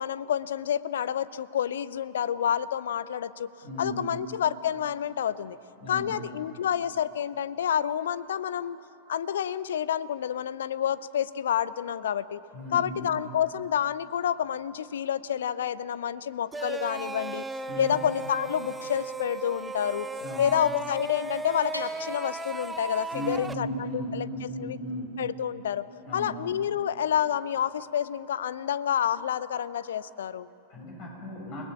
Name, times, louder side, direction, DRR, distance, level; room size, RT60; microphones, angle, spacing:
voice 1, 0.0-3.5 3.8-5.6 5.9-8.8 9.1-12.4 12.7-17.5 17.8-20.1 20.4-24.8 25.2-25.9 26.1-30.5, left 9 dB, 60° left, 18 dB, 0.6 m, -29 dB
voice 2, 3.6-4.0 5.8-6.1 12.5-13.1 17.7-18.0 20.2-20.5 23.1-25.1 26.0-26.3 30.7-31.6, equal, 40° left, 0 dB, 7.7 m, -36 dB
sound 1, 16.5-23.5, right 3 dB, 10° right, 0.7 m, -36 dB
Bell, 21.7-23.4, equal, 90° right, 1.8 m, -45 dB
28.5 x 19.5 x 7.3 m, 2.8 s
figure-of-eight pair, 90°, 0 cm